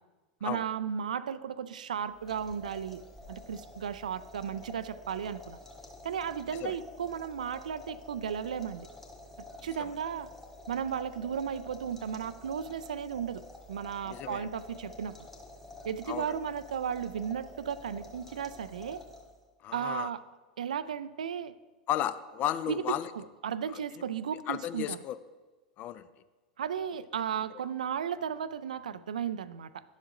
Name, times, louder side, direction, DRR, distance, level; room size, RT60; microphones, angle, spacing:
voice 1, 0.4-3.0 3.3-5.6 6.0-8.9 9.6-10.3 10.7-13.4 13.7-15.2 15.8-19.0 19.7-20.2 20.6-21.5 22.7-25.0 26.6-29.8, right 8 dB, 75° right, 15 dB, 0.3 m, -35 dB
sound 1, 2.1-19.5, left 2 dB, 10° left, 1.8 m, -49 dB
voice 2, 14.0-14.5 16.1-16.3 19.6-20.1 21.9-23.1 23.7-23.8 24.5-25.2 25.8-26.1, left 12 dB, 40° left, 14 dB, 0.4 m, -33 dB
10.5 x 7.2 x 2.5 m, 1.2 s
figure-of-eight pair, 90°, 4 cm